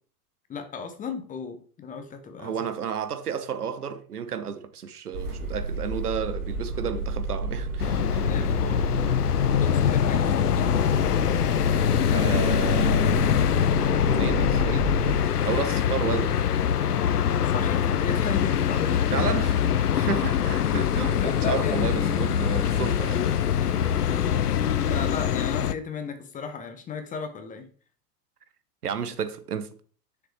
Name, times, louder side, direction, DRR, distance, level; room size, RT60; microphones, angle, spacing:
voice 1, 0.5-2.7 8.2-8.9 9.5-10.9 17.4-19.4 20.0-20.3 21.2-22.3 23.5-27.7, left 6 dB, 15° left, 1.0 m, -36 dB
voice 2, 2.4-8.3 12.1-13.0 14.0-14.9 15.4-16.4 19.1-23.2 28.8-29.7, right 7 dB, 70° right, 1.1 m, -32 dB
sound 1, 5.1-15.2, right 3 dB, 55° right, 3.2 m, -31 dB
sound 2, 7.8-25.7, left 9 dB, 75° left, 0.6 m, -23 dB
7.8 x 6.7 x 3.3 m
figure-of-eight pair, 100°, 47 cm